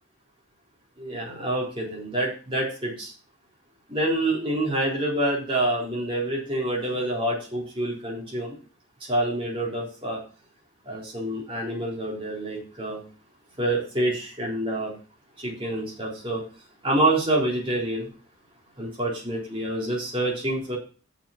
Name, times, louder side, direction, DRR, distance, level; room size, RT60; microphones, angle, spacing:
voice 1, 1.0-3.1 3.9-8.6 9.1-10.2 10.9-13.0 13.6-14.9 15.4-16.4 16.8-18.1 18.8-20.8, right 1 dB, 25° right, -4 dB, 3.9 m, -27 dB
6.9 x 5.8 x 7.3 m, 0.37 s
head